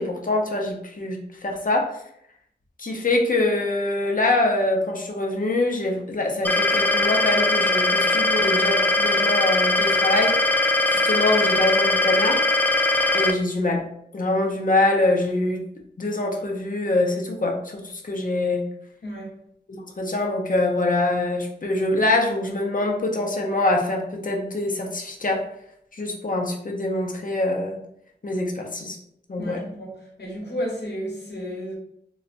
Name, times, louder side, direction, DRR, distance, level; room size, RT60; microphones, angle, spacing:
voice 1, 0.0-2.0 2.8-10.4 10.9-12.4 13.1-13.9 14.1-15.6 16.0-18.6 19.7-25.4 25.9-27.8 28.2-29.0 29.3-29.6, left 2 dB, 45° left, 1 dB, 0.6 m, -24 dB
sound 1, 6.4-13.3, left 2 dB, 10° left, 0.3 m, -20 dB
voice 2, 19.0-19.4 29.4-31.8, equal, 65° left, -2 dB, 1.0 m, -32 dB
3.9 x 2.1 x 2.5 m, 0.71 s
wide cardioid pair, 60°, 19 cm